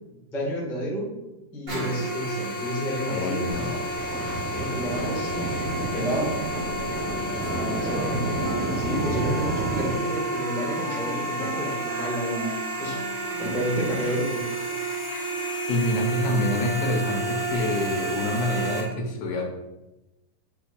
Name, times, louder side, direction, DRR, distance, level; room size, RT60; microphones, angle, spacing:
voice 1, 0.3-1.1 1.5-3.5 4.6-5.4 5.9-6.3 7.8-12.5 12.8-13.0 13.4-14.4, equal, ahead, -5 dB, 0.5 m, -30 dB
sound 1, 1.7-18.8, right 1 dB, 30° right, 1.7 m, -31 dB
voice 2, 3.1-3.7 15.7-19.4, left 1 dB, 80° left, 0 dB, 2.8 m, -26 dB
sound 2, 3.5-10.0, right 2 dB, 50° right, 1.7 m, -31 dB
Wind instrument woodwind instrument, 6.4-13.9, right 3 dB, 80° right, 1.4 m, -37 dB
9.3 x 4.4 x 2.6 m, 0.99 s
omnidirectional pair, 4.1 m